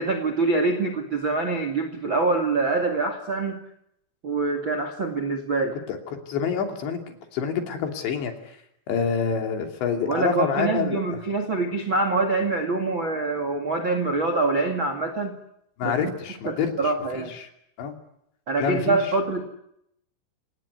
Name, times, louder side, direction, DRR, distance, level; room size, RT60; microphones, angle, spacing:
voice 1, 0.0-3.6 4.2-5.8 10.0-15.4 15.8-16.0 16.4-17.3 18.5-19.4, right 3 dB, 40° right, 7 dB, 1.8 m, -25 dB
voice 2, 5.9-8.3 8.9-11.0 15.8-17.5 17.8-17.9 18.6-19.0, left 6 dB, 65° left, 4 dB, 4.9 m, -27 dB
29.0 x 19.0 x 9.7 m, 0.78 s
omnidirectional pair, 5.9 m